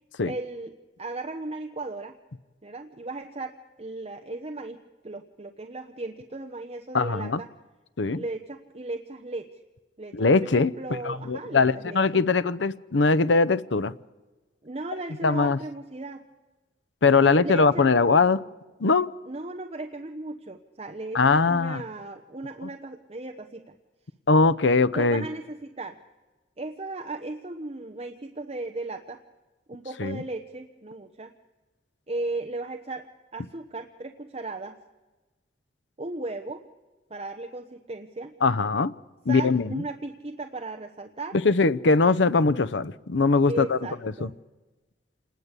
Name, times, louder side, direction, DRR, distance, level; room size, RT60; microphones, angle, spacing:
voice 1, 0.2-2.1 2.6-4.8 5.0-7.5 8.1-9.5 10.0-12.2 14.6-16.2 17.2-17.9 19.2-23.7 24.9-26.0 26.6-29.2 29.7-31.3 32.1-33.1 33.3-34.8 36.0-36.6 37.1-38.3 39.3-41.4 43.5-44.3, right 2 dB, 35° right, 1.0 m, -36 dB
voice 2, 6.9-7.4 8.0-8.2 10.1-10.7 11.0-13.9 15.2-15.6 17.0-18.4 18.8-19.1 21.1-21.8 24.3-25.2 30.0-30.2 38.4-38.9 39.3-39.8 41.4-43.8 44.2-44.3, left 4 dB, 85° left, 0.7 m, -21 dB
28.0 x 20.0 x 8.3 m
head